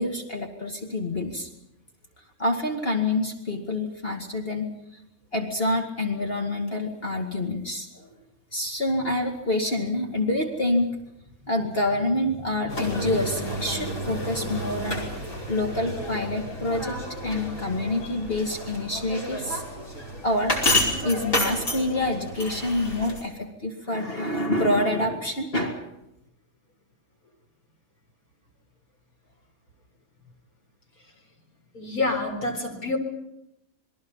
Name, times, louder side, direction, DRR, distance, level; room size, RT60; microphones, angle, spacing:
voice 1, 0.0-1.5 2.4-4.7 5.3-8.0 8.5-11.0 11.4-15.0 15.5-19.6 20.2-20.6 21.0-25.9, left 1 dB, 40° left, 2 dB, 2.4 m, -27 dB
sound 1, 12.7-23.3, left 1 dB, 60° left, 5.8 m, -30 dB
voice 2, 31.7-33.0, left 2 dB, 80° left, 2 dB, 4.8 m, -27 dB
28.0 x 21.5 x 5.6 m, 0.85 s
omnidirectional pair, 1.5 m